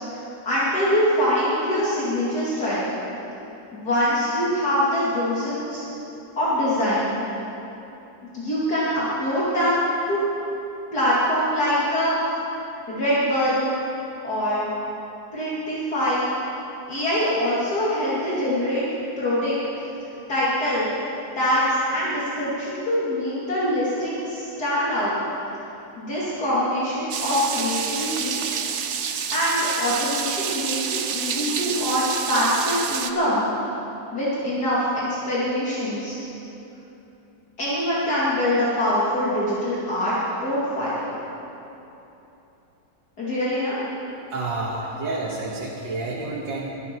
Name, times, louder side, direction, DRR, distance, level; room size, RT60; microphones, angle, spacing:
voice 1, 0.0-2.9 3.7-5.8 6.4-7.2 8.3-10.2 10.9-12.2 12.9-13.6 14.2-14.7 15.3-16.3 16.9-18.8 19.2-19.6 20.3-20.9 21.4-25.2 25.6-25.7 26.0-28.4 29.3-33.5 34.1-36.1 37.6-40.1 40.4-41.1 43.2-43.8, equal, 60° left, -9 dB, 3.1 m, -24 dB
sound 1, 27.1-33.1, right 7 dB, 55° right, 0.8 m, -28 dB
voice 2, 44.3-46.7, right 2 dB, 90° right, -5 dB, 2.2 m, -29 dB
22.0 x 12.5 x 4.6 m, 3.0 s
omnidirectional pair, 1.9 m